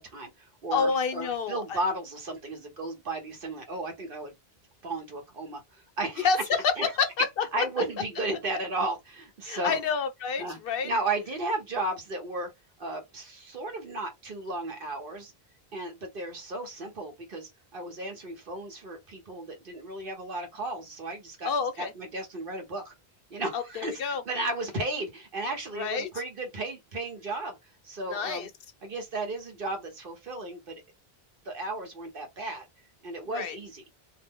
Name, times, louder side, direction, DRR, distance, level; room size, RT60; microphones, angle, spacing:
voice 1, 0.0-4.3 4.8-6.4 6.8-6.9 7.5-9.8 10.4-10.6 10.8-12.5 12.8-15.3 15.7-21.5 21.8-22.9 23.3-28.5 28.8-30.8 31.4-32.7 33.0-33.8, right 2 dB, 60° right, 1.1 m, -34 dB
voice 2, 0.7-1.8 6.2-6.4 6.6-7.6 9.4-10.9 21.4-21.9 23.5-24.2 25.7-26.1 28.1-28.5 33.3-33.6, left 5 dB, 65° left, 0.7 m, -28 dB
2.6 x 2.0 x 3.5 m
omnidirectional pair, 1.0 m